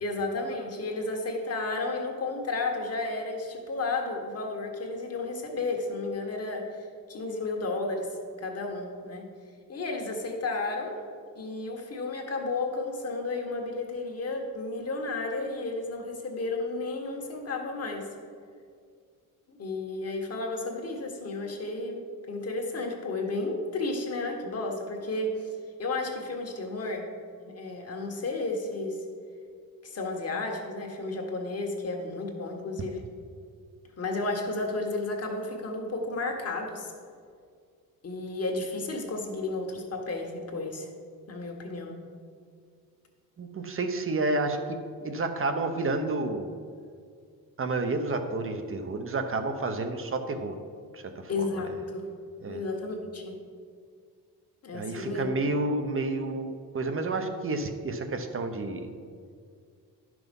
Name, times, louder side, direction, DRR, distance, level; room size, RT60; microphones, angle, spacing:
voice 1, 0.0-6.6 7.1-8.1 8.4-9.3 9.7-10.9 11.4-18.1 19.5-22.0 22.3-25.5 25.8-27.1 27.5-29.0 29.8-33.0 34.0-36.9 38.0-40.9 41.3-42.0 51.3-52.1 52.5-53.4 54.6-55.3, left 2 dB, 40° left, 1 dB, 1.7 m, -32 dB
voice 2, 43.4-46.5 47.6-50.6 50.9-51.5 52.4-52.6 54.7-58.9, right 2 dB, 35° right, 6 dB, 0.9 m, -30 dB
10.5 x 6.1 x 5.3 m, 2.2 s
cardioid pair, 115°, 36 cm